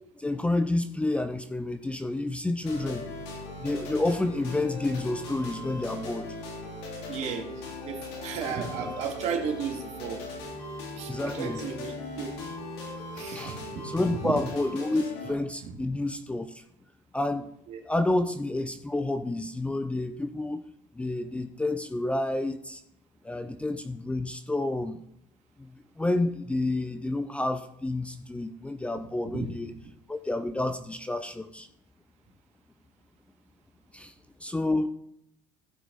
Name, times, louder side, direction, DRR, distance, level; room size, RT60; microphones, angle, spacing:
voice 1, 0.2-3.1 3.6-6.3 11.1-11.6 13.3-13.6 13.8-16.6 17.1-17.5 17.8-20.6 20.9-22.8 23.2-25.0 25.6-29.7 30.1-31.7 33.9-34.1 34.4-34.9, left 2 dB, 10° left, 9 dB, 0.6 m, -29 dB
sound 1, 2.6-15.3, left 2 dB, 85° left, 3.3 m, -39 dB
voice 2, 7.1-10.3 10.9-12.3 13.1-14.3 15.7-15.8 17.7-17.8 29.3-29.5, right 6 dB, 55° right, 3 dB, 2.4 m, -34 dB
15.0 x 6.2 x 4.1 m, 0.75 s
supercardioid pair, 110°, 14 cm